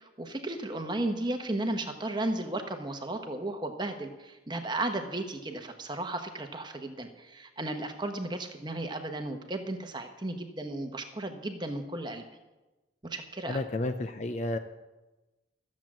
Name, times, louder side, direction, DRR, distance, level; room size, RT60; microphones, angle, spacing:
voice 1, 0.0-12.2 13.0-13.6, right 2 dB, 25° right, 6 dB, 1.0 m, -34 dB
voice 2, 13.5-14.6, left 2 dB, 35° left, 8 dB, 0.5 m, -31 dB
13.5 x 7.5 x 7.4 m, 1.1 s
head